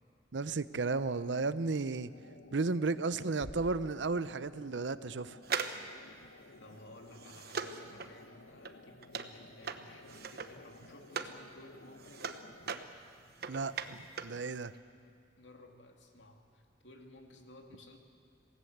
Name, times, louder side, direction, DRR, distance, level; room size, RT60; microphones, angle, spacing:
voice 1, 0.3-2.1 2.5-5.4 13.5-14.7, right 3 dB, 75° right, 15 dB, 0.7 m, -34 dB
sound 1, 2.0-12.8, left 3 dB, 90° left, 1.0 m, -56 dB
sound 2, 3.4-5.3, left 1 dB, 50° left, 1.0 m, -52 dB
sound 3, 5.4-11.4 11.7-14.4 14.7-14.8, right 6 dB, 60° right, 1.1 m, -41 dB
voice 2, 6.6-12.3 15.4-18.0, left 1 dB, 75° left, 3 dB, 2.6 m, -56 dB
27.0 x 17.5 x 8.0 m, 2.3 s
head